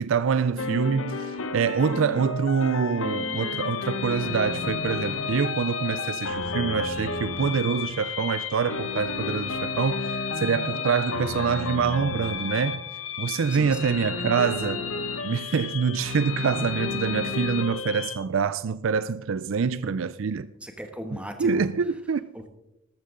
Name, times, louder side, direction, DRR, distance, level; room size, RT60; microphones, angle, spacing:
voice 1, 0.0-12.8 13.2-14.8 15.2-20.5 21.4-22.2, right 6 dB, 65° right, 0.4 m, -25 dB
sound 1, 0.6-18.2, left 4 dB, 75° left, 1.0 m, -31 dB
voice 2, 13.5-13.9 20.6-21.7 22.3-22.5, equal, 5° right, 1.3 m, -37 dB
13.5 x 13.0 x 3.8 m
head